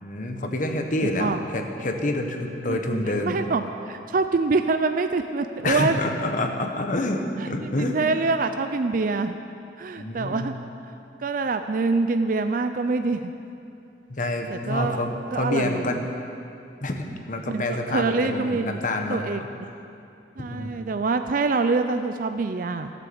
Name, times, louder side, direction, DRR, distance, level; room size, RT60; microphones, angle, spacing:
voice 1, 0.0-3.4 5.6-8.0 10.0-10.5 14.1-16.0 16.8-19.5 20.5-20.7, left 2 dB, 45° left, 4 dB, 1.2 m, -27 dB
voice 2, 1.0-1.4 2.7-2.8 3.2-6.0 7.4-9.4 9.8-10.5 11.2-13.3 14.5-15.0 15.3-15.9 17.5-18.8 19.1-19.7 20.4-22.9, right 3 dB, 50° right, 8 dB, 0.4 m, -25 dB
16.0 x 8.4 x 7.1 m, 2.6 s
head